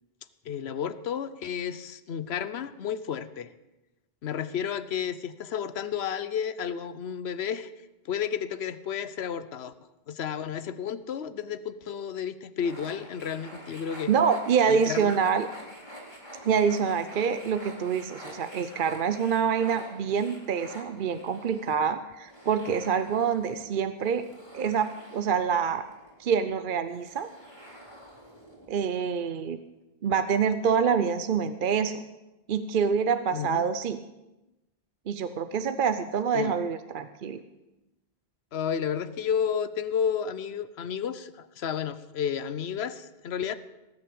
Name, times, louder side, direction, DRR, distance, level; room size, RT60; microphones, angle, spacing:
voice 1, 0.5-3.5 4.2-7.7 8.1-9.7 10.1-14.1 14.7-15.2 33.3-33.7 36.3-36.5 38.5-43.6, left 8 dB, 85° left, 14 dB, 1.0 m, -32 dB
sound 1, 12.6-29.0, equal, 25° left, 3.2 m, -47 dB
voice 2, 14.1-15.5 16.4-24.3 24.5-25.8 26.2-27.3 28.7-29.6 30.0-32.0 32.5-34.0 35.1-37.4, right 6 dB, 60° right, 11 dB, 0.8 m, -26 dB
18.5 x 6.8 x 8.5 m, 0.99 s
omnidirectional pair, 1.1 m